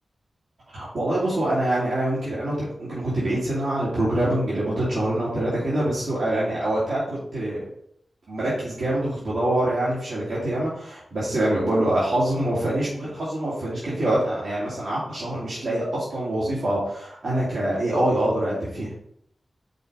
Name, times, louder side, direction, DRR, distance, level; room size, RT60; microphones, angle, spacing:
voice 1, 0.7-7.6 8.3-18.9, right 1 dB, 85° right, -9 dB, 2.7 m, -25 dB
6.7 x 4.9 x 3.9 m, 0.69 s
wide cardioid pair, 135°, 0 cm